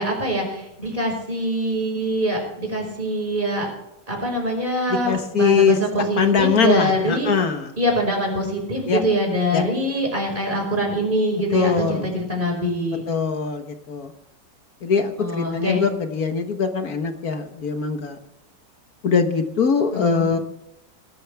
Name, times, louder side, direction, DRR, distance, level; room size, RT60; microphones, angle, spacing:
voice 1, 0.0-3.7 4.1-7.3 7.8-13.0 15.2-15.8 19.9-20.3, equal, 25° right, 0 dB, 5.5 m, -24 dB
voice 2, 5.1-5.8 6.2-7.7 8.9-9.0 9.5-9.6 11.5-12.1 13.1-14.1 14.8-18.2 19.0-20.4, left 5 dB, 60° left, 6 dB, 1.7 m, -21 dB
21.5 x 12.5 x 3.5 m, 0.84 s
omnidirectional pair, 1.9 m